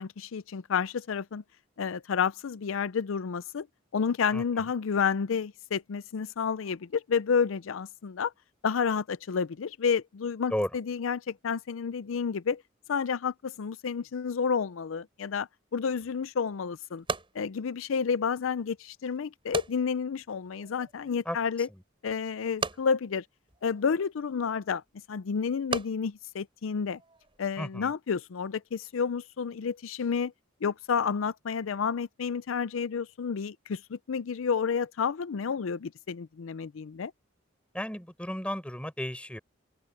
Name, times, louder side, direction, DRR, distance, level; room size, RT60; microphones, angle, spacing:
voice 1, 0.0-1.4 1.8-3.7 3.9-8.3 8.6-12.6 12.9-17.0 17.3-21.7 22.0-23.2 23.6-24.8 25.1-27.0 27.4-30.3 30.6-37.1, left 6 dB, 85° left, 0.5 m, -30 dB
voice 2, 4.3-4.7 10.5-10.7 21.3-21.4 27.6-27.9 37.7-39.4, equal, 5° left, 5.2 m, -33 dB
sound 1, 16.0-27.4, right 3 dB, 25° right, 6.6 m, -41 dB
open air
head